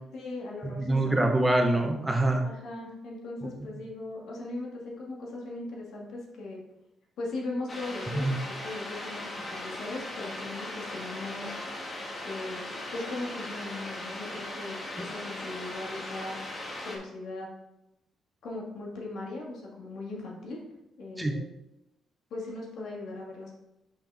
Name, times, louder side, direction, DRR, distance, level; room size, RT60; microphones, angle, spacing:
voice 1, 0.1-1.2 2.4-6.6 7.2-11.6 12.2-16.4 16.8-17.5 18.4-20.6 21.0-21.5 22.3-23.5, left 2 dB, 75° left, -3 dB, 2.0 m, -38 dB
voice 2, 0.8-2.4 8.1-8.4 21.2-21.3, right 1 dB, 15° right, 3 dB, 1.0 m, -25 dB
sound 1, 7.7-17.0, left 1 dB, 35° left, 1.5 m, -38 dB
5.6 x 5.6 x 3.5 m, 0.91 s
cardioid pair, 90°, 0 cm